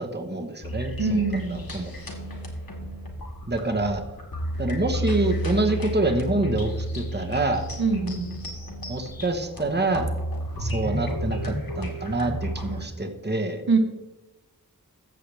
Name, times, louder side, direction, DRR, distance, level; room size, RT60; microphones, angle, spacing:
voice 1, 0.0-1.2 1.5-1.9 3.5-4.0 4.6-7.7 8.9-10.1 10.6-13.6, right 2 dB, 25° right, 6 dB, 1.2 m, -26 dB
sound 1, 0.6-12.8, right 1 dB, 70° left, 2.0 m, -32 dB
voice 2, 1.0-1.7 7.8-8.3 13.7-13.8, right 4 dB, 75° right, 5 dB, 1.4 m, -23 dB
13.5 x 7.7 x 3.4 m, 1.1 s
wide cardioid pair, 45°, 37 cm